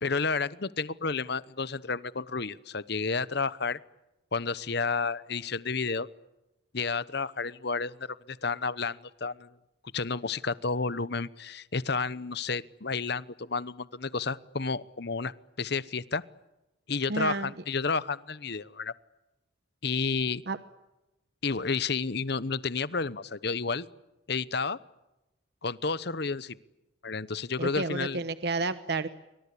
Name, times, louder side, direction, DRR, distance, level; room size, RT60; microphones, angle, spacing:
voice 1, 0.0-3.8 4.3-6.1 6.7-8.0 8.3-9.5 9.9-15.3 15.6-16.2 16.9-18.9 19.8-20.4 21.4-23.9 24.3-24.8 25.6-26.6 27.0-28.2, left 4 dB, 55° left, 17 dB, 0.9 m, -31 dB
voice 2, 17.1-17.5 20.5-20.6 27.6-29.1, right 3 dB, 55° right, 12 dB, 1.0 m, -31 dB
28.5 x 24.5 x 8.5 m, 0.98 s
head